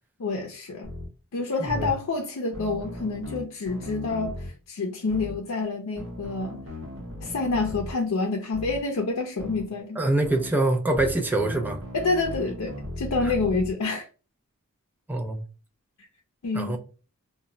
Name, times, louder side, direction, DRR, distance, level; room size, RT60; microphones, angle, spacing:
voice 1, 0.2-0.9 1.3-6.6 7.2-10.0 11.9-14.1 16.0-16.1 16.4-16.8, left 3 dB, 90° left, 0.5 m, -28 dB
sound 1, 0.8-1.1 1.7-1.9 2.5-4.5 5.1-5.4 6.0-7.9 8.5-8.8 9.4-9.7 10.2-10.5 10.9-13.7, left 1 dB, 65° right, 0.8 m, -37 dB
voice 2, 1.6-1.9 10.0-11.8 13.2-13.3 15.1-15.4 16.5-16.8, right 2 dB, 10° right, 0.4 m, -25 dB
2.2 x 2.0 x 3.7 m
head